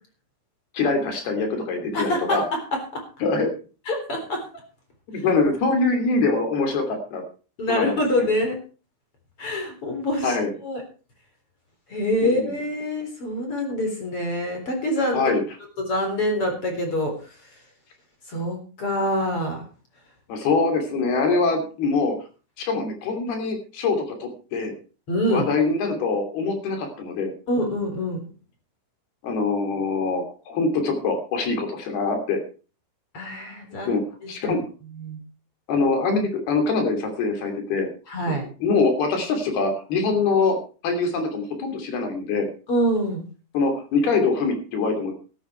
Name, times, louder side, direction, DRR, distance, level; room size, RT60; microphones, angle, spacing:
voice 1, 0.7-2.4 3.2-3.5 5.1-7.2 7.7-8.3 10.2-10.5 12.2-12.6 15.1-15.4 20.3-22.1 22.6-24.7 25.3-27.3 29.2-32.4 33.9-34.6 35.7-37.9 38.3-38.4 38.6-40.6 40.8-42.5 43.5-45.1, left 4 dB, 55° left, 5 dB, 4.6 m, -24 dB
voice 2, 1.9-2.6 3.9-4.4 7.6-8.6 9.4-10.4 10.6-10.8 11.9-15.2 15.8-17.1 18.3-19.6 25.1-25.5 27.5-28.3 33.1-34.6 34.9-35.2 38.1-38.4 42.7-43.2, equal, 30° left, 3 dB, 4.3 m, -25 dB
14.5 x 12.5 x 4.5 m, 0.37 s
omnidirectional pair, 5.8 m